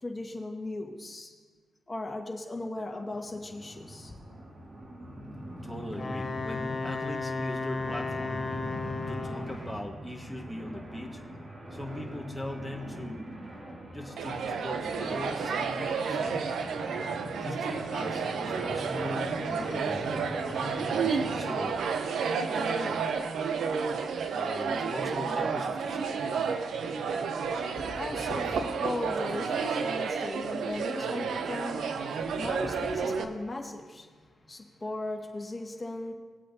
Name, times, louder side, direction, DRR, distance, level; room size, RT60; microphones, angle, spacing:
voice 1, 0.0-1.3 1.9-4.1 27.7-36.1, left 2 dB, 25° left, 1 dB, 1.8 m, -37 dB
sound 1, 3.1-21.7, equal, 45° right, 2.2 m, -42 dB
voice 2, 5.6-8.4 9.1-11.2 11.7-13.3 13.9-16.5 17.3-20.3 20.9-21.8 22.5-23.1 24.3-26.3, left 1 dB, ahead, 1 dB, 1.6 m, -40 dB
Wind instrument woodwind instrument, 5.9-9.7, left 3 dB, 40° left, 1.0 m, -34 dB
sound 2, 14.2-33.2, right 5 dB, 75° right, 0.8 m, -31 dB
19.0 x 8.2 x 2.9 m, 1.5 s
cardioid pair, 80°, 0 cm